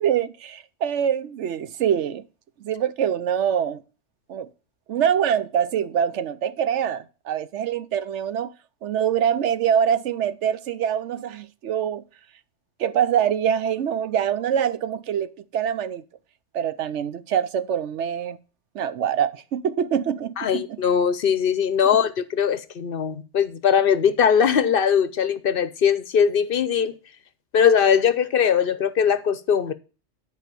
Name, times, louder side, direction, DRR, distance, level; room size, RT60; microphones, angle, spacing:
voice 1, 0.0-2.2 2.6-3.8 4.3-4.5 4.9-8.5 8.8-12.0 12.8-16.0 16.5-18.4 18.7-20.8, right 9 dB, 75° right, 1.0 m, -24 dB
voice 2, 20.4-26.9 27.5-29.7, left 7 dB, 55° left, 0.7 m, -20 dB
10.5 x 4.8 x 6.8 m
omnidirectional pair, 1.2 m